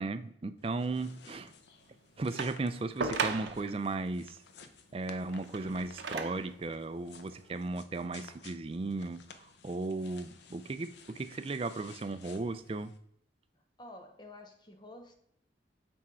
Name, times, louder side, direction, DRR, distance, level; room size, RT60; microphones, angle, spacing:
voice 1, 0.0-1.5 2.2-4.4 4.9-12.9, right 3 dB, 30° right, 11 dB, 0.4 m, -36 dB
sound 1, 0.6-13.0, left 5 dB, 70° left, 0.6 m, -55 dB
sound 2, 2.4-3.8 5.3-6.5 7.4-7.5, right 4 dB, 80° right, 0.6 m, -36 dB
voice 2, 13.5-15.1, left 1 dB, 25° left, 5 dB, 0.8 m, -50 dB
6.1 x 4.4 x 4.7 m, 0.71 s
head